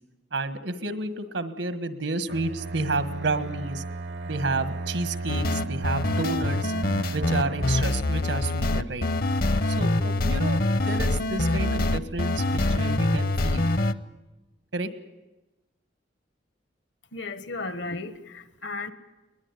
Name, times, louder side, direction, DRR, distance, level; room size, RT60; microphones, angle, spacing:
voice 1, 0.3-3.8 4.3-6.7 7.1-9.1 9.6-13.7 14.7-14.9, right 2 dB, 90° right, 12 dB, 1.6 m, -30 dB
Bowed string instrument, 2.3-8.0, right 2 dB, 75° right, 0.8 m, -34 dB
sound 1, 5.3-13.9, left 2 dB, 55° left, 0.8 m, -25 dB
voice 2, 17.1-18.9, left 3 dB, 80° left, 13 dB, 1.4 m, -34 dB
21.0 x 20.5 x 9.7 m, 1.1 s
head